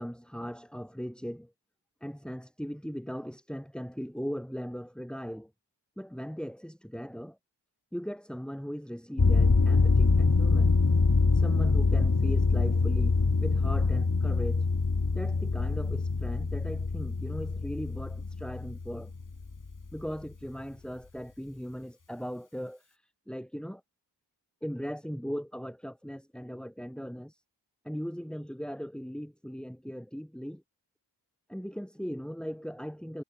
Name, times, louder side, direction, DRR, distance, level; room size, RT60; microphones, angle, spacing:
voice 1, 0.0-1.5 2.0-5.5 6.0-7.4 7.9-10.8 11.3-14.7 15.1-19.1 19.9-23.8 24.6-27.4 27.8-30.6 31.5-33.2, equal, ahead, 4.8 m, -38 dB
sound 1, 9.2-20.0, left 4 dB, 45° left, 1.9 m, -25 dB
wide cardioid pair, 50°, 43 cm